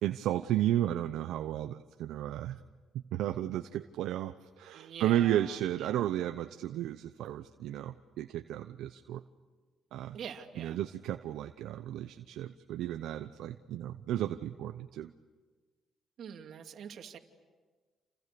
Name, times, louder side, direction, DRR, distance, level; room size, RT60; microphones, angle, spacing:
voice 1, 0.0-2.6 2.9-9.2 9.9-10.2 10.6-15.1, right 12 dB, 85° right, 9 dB, 0.8 m, -33 dB
voice 2, 4.7-6.0 10.1-10.8 16.2-17.2, right 8 dB, 70° right, 4 dB, 2.6 m, -45 dB
29.5 x 29.0 x 6.9 m, 1.4 s
cardioid pair, 90°, 0 cm